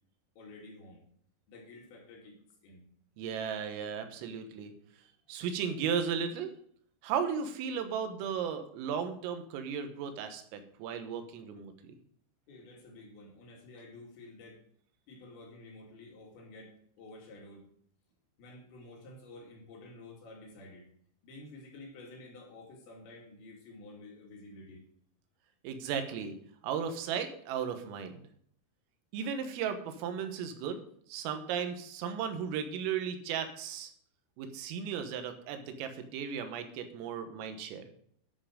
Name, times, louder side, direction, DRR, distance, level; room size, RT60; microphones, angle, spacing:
voice 1, 0.4-1.0 1.5-2.8 12.5-14.6 15.1-17.7 18.4-20.9 21.2-24.8, left 2 dB, 65° left, -1 dB, 4.6 m, -51 dB
voice 2, 3.2-4.7 5.3-6.5 7.0-11.9 25.6-26.4 26.6-28.2 29.1-30.8 31.1-33.9 34.4-37.9, right 7 dB, 90° right, 7 dB, 3.8 m, -35 dB
11.0 x 7.6 x 5.1 m, 0.63 s
omnidirectional pair, 5.8 m